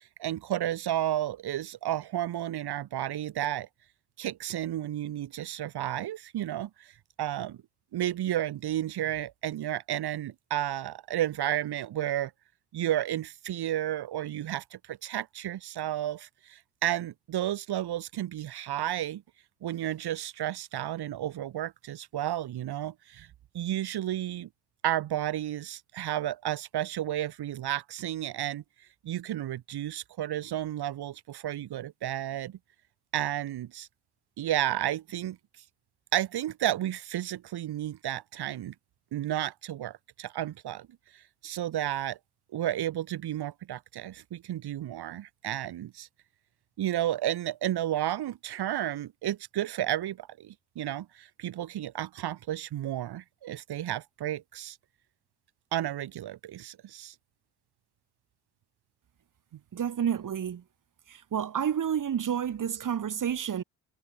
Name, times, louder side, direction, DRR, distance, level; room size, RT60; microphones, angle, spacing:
voice 1, 0.2-3.7 4.2-6.9 7.2-7.6 7.9-12.3 12.7-19.2 19.6-23.3 23.5-24.5 24.8-28.6 29.0-32.6 33.1-33.9 34.4-35.4 36.1-38.7 39.1-40.9 41.4-42.2 42.5-46.1 46.8-54.8 55.7-57.1, right 12 dB, 75° right, 1.7 m, -32 dB
voice 2, 59.7-60.6 61.1-63.6, right 8 dB, 50° right, 1.5 m, -30 dB
cardioid pair, 80°, 39 cm